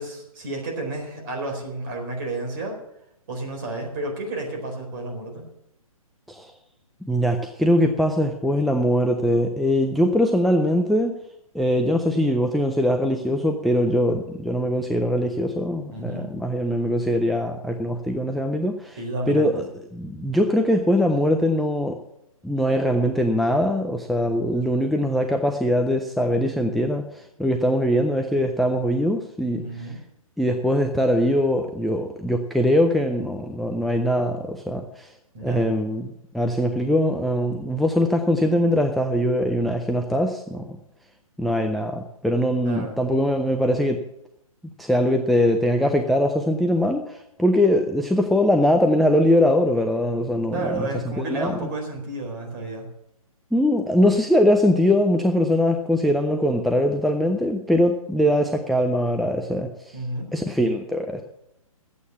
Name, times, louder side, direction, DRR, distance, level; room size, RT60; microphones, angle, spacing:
voice 1, 0.0-2.8 3.3-5.5 15.9-16.3 19.0-19.6 29.6-30.0 35.3-35.6 42.6-42.9 50.5-52.9 59.9-60.3, right 2 dB, 35° right, 2 dB, 4.2 m, -31 dB
voice 2, 7.0-11.2 11.5-19.0 19.3-19.6 19.9-22.0 22.4-30.0 30.4-35.1 35.4-40.8 41.4-44.0 44.8-51.7 53.5-60.0 60.3-61.2, equal, ahead, 3 dB, 0.4 m, -22 dB
13.0 x 8.6 x 7.1 m, 0.82 s
figure-of-eight pair, 135°, 18 cm